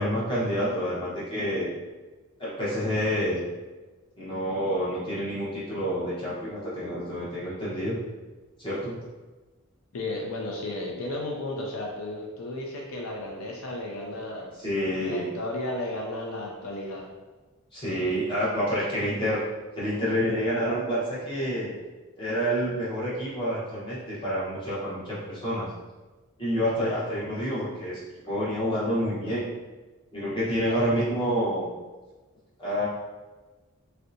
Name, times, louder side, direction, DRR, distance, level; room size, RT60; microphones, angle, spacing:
voice 1, 0.0-1.7 2.4-3.4 4.2-7.9 8.6-8.9 14.6-15.3 17.7-19.4 19.7-21.7 22.2-25.7 26.4-29.4 30.1-31.7 32.6-32.9, equal, 20° left, -9 dB, 0.9 m, -28 dB
voice 2, 9.9-14.5 15.0-17.1 30.6-30.9, left 1 dB, 75° left, -1 dB, 0.4 m, -34 dB
3.2 x 2.7 x 2.6 m, 1.2 s
head